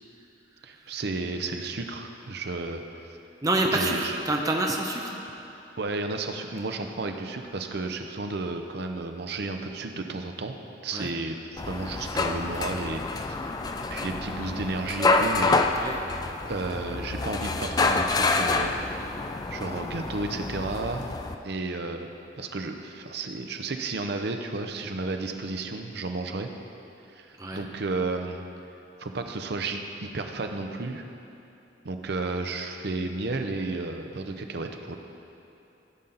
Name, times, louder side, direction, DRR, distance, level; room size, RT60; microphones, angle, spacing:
voice 1, 0.6-2.8 3.7-4.2 5.8-10.5 10.8-13.5 13.9-15.8 16.4-18.8 19.5-21.1 21.4-22.1 22.4-26.5 27.1-28.4 29.0-31.0 31.8-35.0, right 3 dB, 60° right, 5 dB, 0.6 m, -32 dB
voice 2, 3.4-5.2 10.9-11.1 15.7-15.9 27.4-27.6, right 2 dB, 20° right, 1 dB, 0.6 m, -27 dB
sound 1, 11.6-21.4, left 3 dB, 20° left, 0.3 m, -27 dB
15.0 x 5.6 x 3.9 m, 3.0 s
head